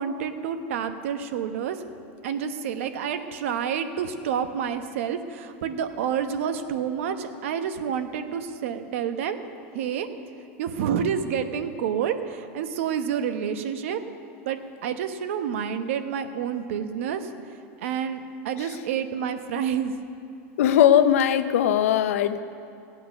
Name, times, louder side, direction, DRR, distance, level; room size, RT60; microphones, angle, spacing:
voice 1, 0.0-1.8 2.2-9.4 9.7-10.1 10.6-14.0 14.4-17.3 17.8-19.9, right 8 dB, 65° right, 8 dB, 1.0 m, -29 dB
voice 2, 20.6-22.4, left 10 dB, 80° left, 11 dB, 0.7 m, -19 dB
15.5 x 8.8 x 6.4 m, 2.5 s
supercardioid pair, 170°, 7 cm